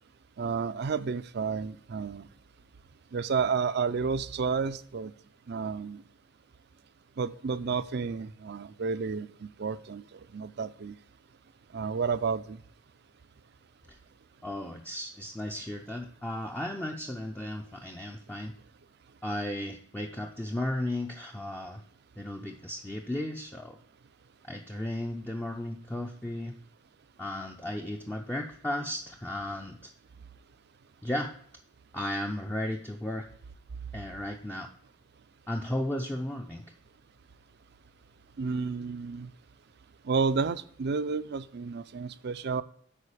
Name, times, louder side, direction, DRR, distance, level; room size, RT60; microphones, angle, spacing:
voice 1, 0.4-2.3 3.1-5.1 5.5-6.0 7.2-11.0 11.7-12.6 38.4-39.3 40.0-42.6, right 5 dB, 55° right, 14 dB, 0.5 m, -31 dB
voice 2, 14.4-18.5 19.2-21.8 22.2-23.8 24.4-26.5 27.2-29.9 31.0-31.3 31.9-33.3 33.9-34.7 35.5-36.6, left 1 dB, 10° left, 2 dB, 0.5 m, -35 dB
8.5 x 5.2 x 4.9 m, 0.62 s
head